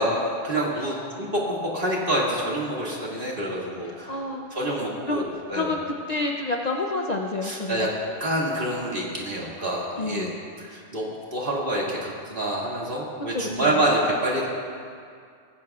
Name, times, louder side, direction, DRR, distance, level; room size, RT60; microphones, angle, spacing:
voice 1, 0.0-4.2 4.5-5.7 7.4-7.9 8.2-10.3 10.6-14.5, right 1 dB, 50° right, -4 dB, 2.4 m, -27 dB
voice 2, 3.9-4.6 5.1-7.9 10.0-10.4 13.3-13.9, left 2 dB, 40° left, 1 dB, 0.7 m, -29 dB
19.0 x 16.0 x 2.4 m, 2.3 s
omnidirectional pair, 1.2 m